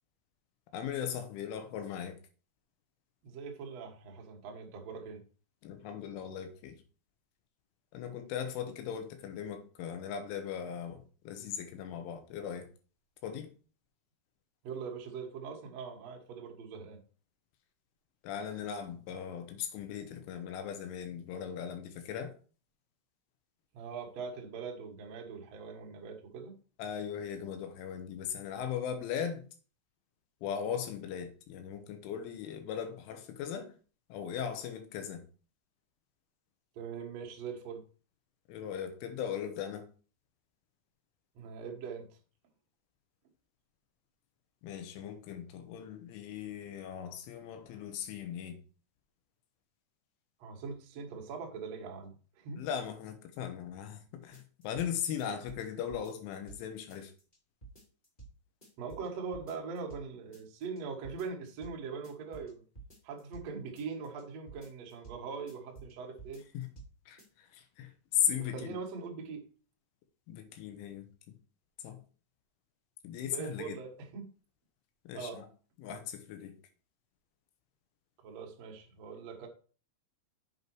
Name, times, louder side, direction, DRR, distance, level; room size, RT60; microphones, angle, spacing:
voice 1, 0.7-2.2 5.6-6.8 7.9-12.7 13.2-13.5 18.2-22.3 26.8-29.4 30.4-33.7 34.1-35.2 38.5-39.9 44.6-48.6 52.6-57.1 66.5-66.7 67.1-68.8 70.3-71.4 71.8-72.0 73.0-73.8 75.1-75.5 75.8-76.6, left 8 dB, 90° left, 3.5 m, -38 dB
voice 2, 3.2-5.2 14.6-17.0 23.7-26.5 36.7-37.8 41.3-42.1 50.4-52.6 58.8-62.6 63.0-66.4 68.4-69.4 73.2-74.3 75.1-75.4 78.2-79.5, right 5 dB, 80° right, 1.5 m, -42 dB
sound 1, 54.3-54.9 55.2-56.6 56.9-57.4 57.6-58.3 58.6-59.1 59.3-60.0 60.3-60.8 61.0-61.7 62.0-63.5 63.7-64.2 64.5-65.2 65.5-65.9 66.2-66.9 67.2-67.3, right 4 dB, 20° left, 1.3 m, -51 dB
7.8 x 5.4 x 4.6 m
omnidirectional pair, 5.5 m